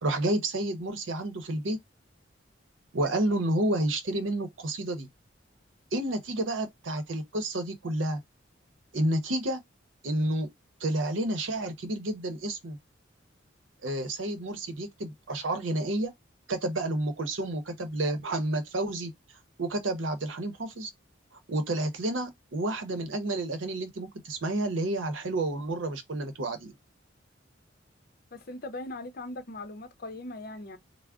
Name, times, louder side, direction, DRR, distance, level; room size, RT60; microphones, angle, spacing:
voice 1, 0.0-1.8 2.9-5.1 5.9-8.2 8.9-9.6 10.0-10.5 10.8-12.8 13.8-16.1 16.5-19.1 19.6-20.9 21.5-26.7, right 1 dB, 85° right, 0.7 m, -30 dB
voice 2, 28.3-30.8, left 2 dB, 50° left, 0.6 m, -39 dB
3.4 x 2.0 x 3.6 m
head